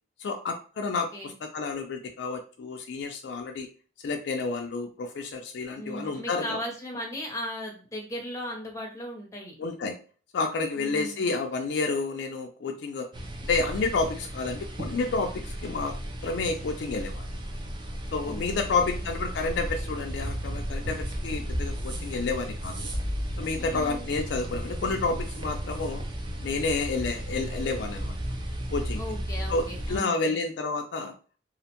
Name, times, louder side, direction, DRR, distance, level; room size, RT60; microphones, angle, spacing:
voice 1, 0.2-3.7 4.0-6.6 9.6-10.0 10.3-13.1 13.5-15.9 16.2-17.4 18.1-22.9 23.4-26.0 26.4-28.2 28.7-29.0 29.5-31.1, left 3 dB, 60° left, 4 dB, 0.3 m, -30 dB
voice 2, 5.8-9.6 10.8-11.2 18.2-19.0 23.6-24.1 29.0-30.4, equal, 15° left, 0 dB, 0.6 m, -37 dB
sound 1, 13.1-30.0, equal, 25° right, 0.3 m, -34 dB
2.5 x 2.1 x 2.8 m, 0.38 s
head